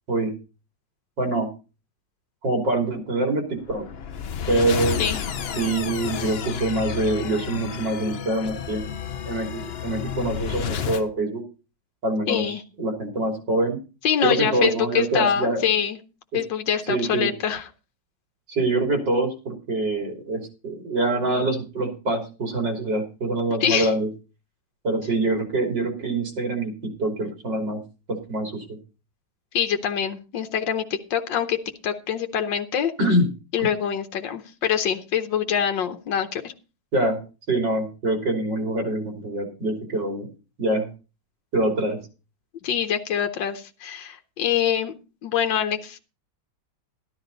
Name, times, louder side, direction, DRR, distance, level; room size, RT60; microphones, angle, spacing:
voice 1, 1.2-1.5 2.4-3.9 4.5-5.0 5.6-8.9 9.3-11.4 12.0-13.8 14.2-15.7 16.3-16.4 16.9-17.3 18.5-24.1 24.8-27.8 28.1-28.6 33.0-33.3 36.9-37.2 37.5-40.3 40.6-40.9 41.5-42.0, right 2 dB, 80° right, 3 dB, 3.9 m, -25 dB
sound 1, 3.7-11.1, left 8 dB, 55° left, 0.7 m, -31 dB
voice 2, 12.3-12.6 14.0-16.0 16.3-17.6 23.6-23.9 29.5-31.6 31.8-32.9 33.5-36.5 42.6-44.9 45.2-46.0, left 8 dB, 85° left, 6 dB, 1.6 m, -25 dB
12.5 x 11.5 x 4.0 m, 0.32 s
omnidirectional pair, 1.9 m